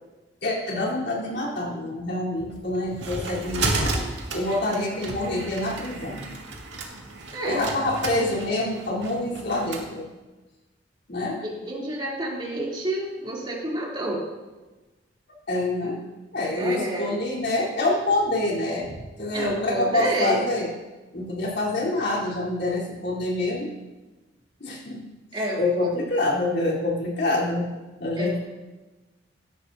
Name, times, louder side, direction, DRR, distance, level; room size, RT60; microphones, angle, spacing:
voice 1, 0.4-3.9 4.3-6.3 7.5-10.1 11.1-11.4 15.5-16.0 16.3-20.7 21.1-23.7 24.6-25.0 25.6-27.7 28.0-28.4, left 2 dB, 60° left, -5 dB, 3.7 m, -26 dB
sound 1, 2.5-9.9, right 2 dB, 70° right, 2.1 m, -32 dB
voice 2, 7.3-7.6 11.4-14.2 16.6-17.2 19.3-20.4 25.3-25.9 28.2-28.4, right 1 dB, 25° right, -5 dB, 3.1 m, -29 dB
17.0 x 13.0 x 2.7 m, 1.2 s
head